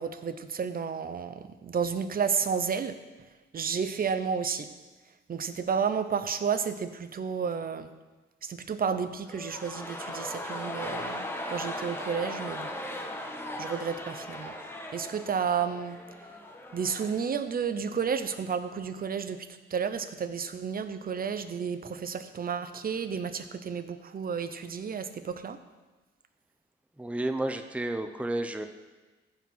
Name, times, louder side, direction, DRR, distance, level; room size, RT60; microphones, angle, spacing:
voice 1, 0.0-3.0 3.5-4.7 5.3-7.9 8.4-12.7 13.6-14.6 14.9-16.0 16.7-25.6, right 6 dB, 45° right, 10 dB, 0.8 m, -31 dB
sound 1, 9.2-17.3 17.6-17.7, left 1 dB, 10° left, 1.4 m, -38 dB
voice 2, 27.0-28.7, right 1 dB, 5° right, 7 dB, 0.7 m, -31 dB
15.0 x 5.1 x 5.6 m, 1.2 s
cardioid pair, 85°, 21 cm